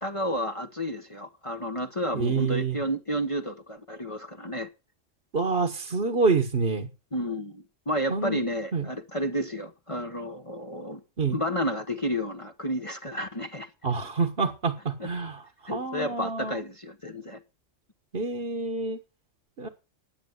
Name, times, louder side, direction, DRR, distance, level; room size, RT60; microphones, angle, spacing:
voice 1, 0.0-4.7 7.1-11.0 11.3-13.7 15.0-15.1 15.7-17.4, equal, 25° left, 1.2 m, -31 dB
voice 2, 2.1-2.8 5.3-6.9 8.1-8.4 8.7-8.9 11.2-11.4 13.8-16.6 18.1-19.0 19.6-19.7, right 4 dB, 50° right, 1.6 m, -27 dB
12.0 x 9.1 x 8.1 m
omnidirectional pair, 1.3 m